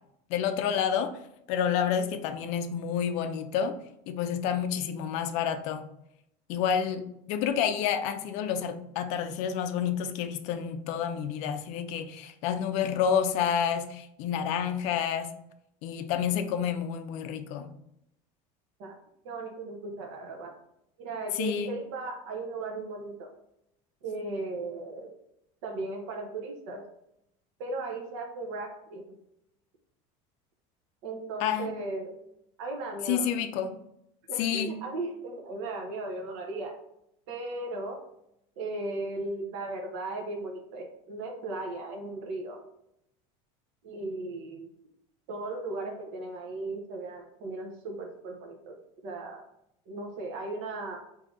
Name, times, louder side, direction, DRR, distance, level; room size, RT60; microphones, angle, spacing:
voice 1, 0.3-1.2 1.5-3.8 4.1-5.9 6.5-15.3 15.8-17.7 21.3-21.7 31.4-31.7 33.1-33.8 34.4-34.7, left 8 dB, 45° left, 8 dB, 0.4 m, -29 dB
voice 2, 19.2-20.6 21.0-23.3 24.0-25.1 25.6-26.8 27.6-29.1 31.0-32.1 32.6-33.3 34.3-36.7 37.3-38.0 38.6-42.6 43.8-44.7 45.3-48.7 49.0-49.4 49.9-51.0, right 2 dB, 70° right, 2 dB, 0.8 m, -36 dB
3.6 x 2.7 x 3.7 m, 0.78 s
cardioid pair, 175°, 16 cm